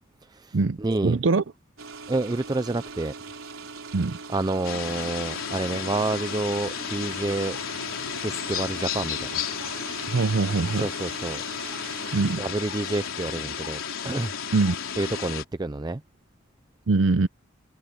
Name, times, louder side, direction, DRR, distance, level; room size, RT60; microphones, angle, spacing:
voice 1, 0.3-1.2 2.1-3.1 4.3-7.6 8.2-9.3 10.8-11.4 12.4-13.8 14.0-14.3 15.0-16.0, right 2 dB, 20° right, 0.4 m, -28 dB
voice 2, 1.0-1.4 3.9-4.2 10.1-10.9 12.1-12.4 14.5-14.8 16.9-17.3, right 3 dB, 65° right, 0.6 m, -22 dB
sound 1, 1.8-12.4, right 4 dB, 90° right, 4.2 m, -41 dB
sound 2, 4.6-15.4, left 7 dB, 90° left, 3.6 m, -33 dB
head